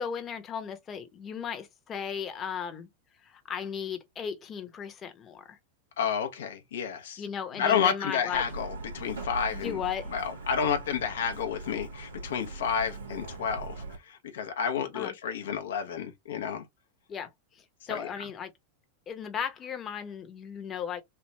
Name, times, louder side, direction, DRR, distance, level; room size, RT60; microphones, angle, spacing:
voice 1, 0.0-2.9 3.2-5.6 7.2-8.4 9.5-10.1 14.9-15.1 17.1-18.5 19.1-21.0, left 7 dB, 30° left, 0.8 m, -36 dB
voice 2, 6.0-7.2 7.6-9.8 10.1-16.6 17.9-18.1, left 7 dB, 75° left, 0.7 m, -30 dB
Truck, 8.3-14.0, right 3 dB, 90° right, 1.1 m, -41 dB
3.4 x 2.4 x 3.0 m
hypercardioid pair, 95°, 0 cm